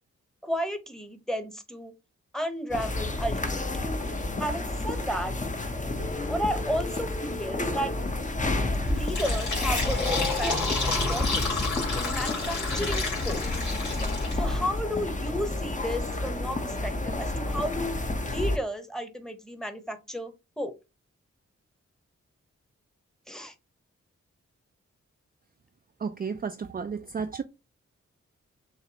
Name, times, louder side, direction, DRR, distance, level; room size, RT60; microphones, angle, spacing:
voice 1, 0.4-1.9 2.3-3.7 4.4-5.3 6.3-7.9 8.9-11.7 11.9-13.4 14.0-18.0 18.2-20.7 23.3-23.5, equal, ahead, 1.0 m, -33 dB
sound 1, 2.7-18.6, left 2 dB, 25° left, 0.8 m, -30 dB
Telephone, 6.0-8.0, left 2 dB, 45° left, 1.6 m, -40 dB
Fill (with liquid), 8.9-14.6, left 3 dB, 75° left, 2.2 m, -30 dB
voice 2, 26.0-27.4, right 5 dB, 30° right, 0.4 m, -32 dB
6.6 x 2.4 x 2.9 m
cardioid pair, 40°, 30 cm